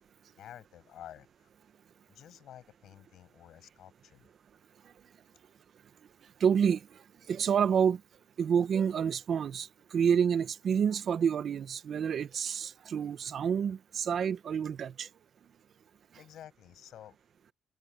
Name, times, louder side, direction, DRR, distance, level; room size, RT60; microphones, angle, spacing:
voice 1, 0.4-1.3 2.1-4.3 16.2-17.2, left 11 dB, 75° left, 7.9 m, -51 dB
voice 2, 6.4-6.8 7.3-8.0 8.4-15.1, right 7 dB, 60° right, 1.2 m, -28 dB
cardioid pair, 90°, 0 cm